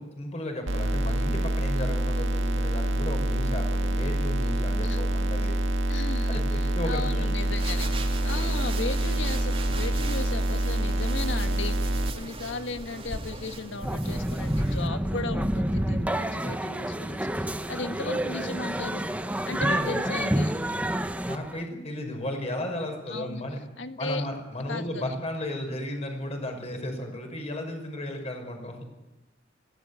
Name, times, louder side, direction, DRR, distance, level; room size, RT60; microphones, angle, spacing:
voice 1, 0.0-5.5 6.3-7.3 19.6-20.1 21.2-23.6 24.0-28.8, left 1 dB, 35° left, 3 dB, 5.8 m, -34 dB
sound 1, 0.7-12.1, right 1 dB, 75° right, 1.6 m, -26 dB
voice 2, 5.9-19.1 19.5-20.5 23.1-23.4 23.8-24.2 24.7-25.1, left 3 dB, 65° left, 8 dB, 1.7 m, -36 dB
sound 2, 7.4-14.9, right 2 dB, 30° right, 3.0 m, -38 dB
sound 3, 13.8-21.6, right 1 dB, 5° right, 1.0 m, -28 dB
22.0 x 17.0 x 8.6 m, 1.0 s
head